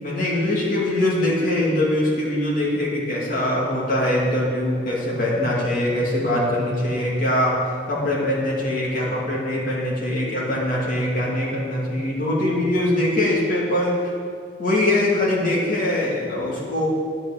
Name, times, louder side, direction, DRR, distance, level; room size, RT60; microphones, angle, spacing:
voice 1, 0.0-7.6 7.9-14.1 14.6-16.9, left 1 dB, 45° left, -5 dB, 2.7 m, -22 dB
10.5 x 6.0 x 8.3 m, 2.3 s
head